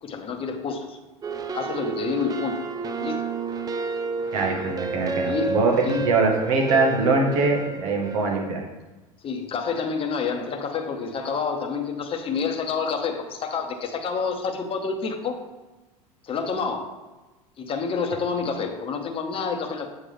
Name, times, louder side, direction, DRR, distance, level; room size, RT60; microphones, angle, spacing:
voice 1, 0.0-1.0 1.5-2.7 3.0-3.2 5.2-6.1 9.2-15.4 16.2-16.9 17.6-19.9, left 5 dB, 30° left, 4 dB, 0.9 m, -28 dB
sound 1, 1.2-8.5, right 5 dB, 20° right, 0.5 m, -30 dB
voice 2, 4.3-8.6, right 3 dB, 70° right, 1 dB, 1.3 m, -22 dB
7.8 x 3.8 x 3.3 m, 1.1 s
hypercardioid pair, 85°, 18 cm